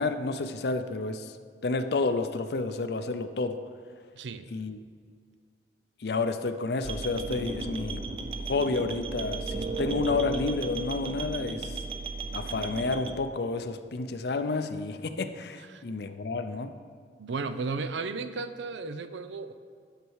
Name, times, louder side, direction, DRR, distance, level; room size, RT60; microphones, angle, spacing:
voice 1, 0.0-1.3 1.6-3.6 4.5-4.8 6.0-8.0 8.4-11.8 12.3-16.7, left 3 dB, 60° left, 9 dB, 0.5 m, -30 dB
voice 2, 4.2-4.5 15.7-15.8 17.2-19.5, right 4 dB, 85° right, 11 dB, 0.5 m, -34 dB
sound 1, 6.8-13.1, right 3 dB, 30° right, 0.6 m, -35 dB
11.0 x 6.7 x 4.7 m, 2.1 s
head